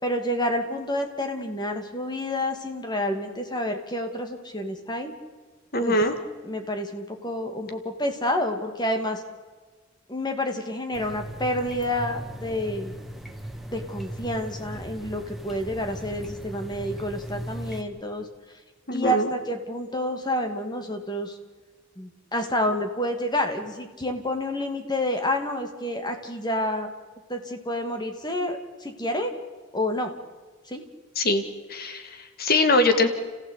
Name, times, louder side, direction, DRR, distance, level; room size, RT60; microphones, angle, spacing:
voice 1, 0.0-5.1 5.8-6.0 6.4-9.2 10.1-12.9 13.7-18.3 18.9-21.4 22.0-26.9 27.3-29.3 29.7-30.1 30.7-30.8, left 1 dB, 20° left, 5 dB, 2.5 m, -29 dB
voice 2, 5.7-6.1 18.9-19.3 31.2-31.4 31.7-33.1, left 2 dB, 50° left, 8 dB, 1.8 m, -22 dB
sound 1, 10.9-17.8, right 1 dB, ahead, 1.7 m, -38 dB
29.5 x 15.5 x 8.4 m, 1.4 s
head